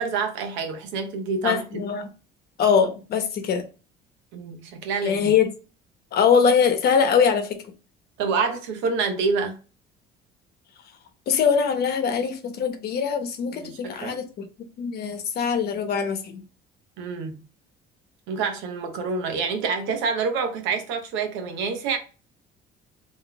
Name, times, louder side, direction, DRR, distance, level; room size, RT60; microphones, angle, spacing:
voice 1, 0.0-1.8 4.3-5.3 8.2-9.6 13.5-14.2 17.0-17.4 18.3-22.0, right 5 dB, 85° right, 1.0 m, -27 dB
voice 2, 1.4-2.1 2.6-3.6 5.0-5.5 6.1-7.7 11.3-16.4, left 6 dB, 55° left, 1.0 m, -22 dB
3.8 x 3.0 x 3.4 m
cardioid pair, 115°, 19 cm